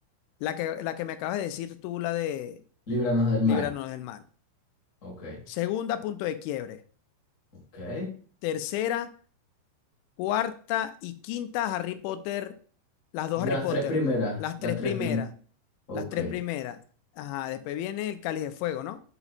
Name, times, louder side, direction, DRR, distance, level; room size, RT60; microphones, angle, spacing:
voice 1, 0.4-2.6 3.5-4.2 5.5-6.8 8.4-9.1 10.2-12.6 13.1-13.9 14.4-15.3 15.9-16.8 17.2-19.0, left 12 dB, 85° left, 10 dB, 3.0 m, -31 dB
voice 2, 2.9-3.7 5.0-5.4 7.7-8.1 13.4-15.3 15.9-16.3, left 2 dB, 70° left, -4 dB, 0.7 m, -28 dB
7.8 x 2.9 x 4.2 m, 0.42 s
omnidirectional pair, 5.4 m